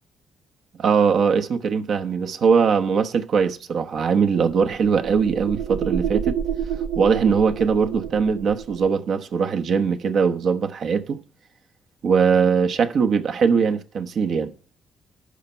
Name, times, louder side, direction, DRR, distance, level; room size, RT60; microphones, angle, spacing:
voice 1, 0.8-6.4 7.0-11.2 12.0-14.5, right 6 dB, 60° right, 1.0 m, -21 dB
sound 1, 4.2-8.9, right 8 dB, 85° right, 0.6 m, -29 dB
11.5 x 4.5 x 6.9 m
cardioid pair, 90°, 0 cm